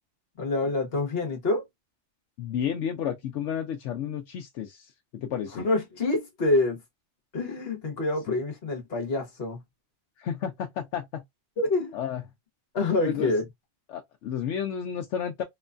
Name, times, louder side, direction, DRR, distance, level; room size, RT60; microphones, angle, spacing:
voice 1, 0.4-1.7 5.6-6.8 7.3-9.6 11.6-12.0 12.7-13.4, left 2 dB, 55° left, 1.2 m, -26 dB
voice 2, 2.4-5.7 8.3-8.4 10.2-11.2 11.9-12.2 13.0-13.3 13.9-15.4, left 8 dB, 75° left, 0.9 m, -32 dB
3.1 x 2.2 x 2.4 m
omnidirectional pair, 1.2 m